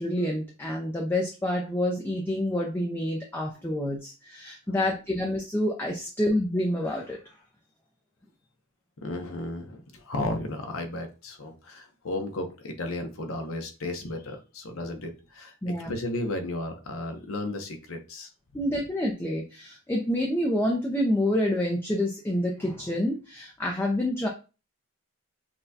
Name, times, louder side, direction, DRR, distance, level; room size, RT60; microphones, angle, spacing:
voice 1, 0.0-7.2 15.6-15.9 18.5-24.3, left 1 dB, 10° left, -1 dB, 0.4 m, -28 dB
voice 2, 9.0-18.3, left 2 dB, 60° left, 4 dB, 0.7 m, -34 dB
5.8 x 2.2 x 2.7 m, 0.32 s
head